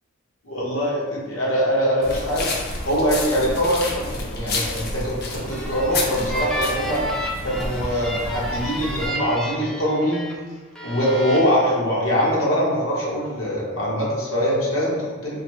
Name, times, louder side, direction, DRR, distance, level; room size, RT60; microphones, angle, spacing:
voice 1, 0.4-2.5 2.8-7.0 7.4-10.3 10.8-15.4, equal, 90° left, -6 dB, 1.1 m, -23 dB
sound 1, 2.0-9.1, left 2 dB, 50° left, 0.5 m, -30 dB
sound 2, 5.3-10.3 10.8-11.4, equal, 5° left, 0.4 m, -31 dB
4.0 x 2.1 x 3.1 m, 1.4 s
head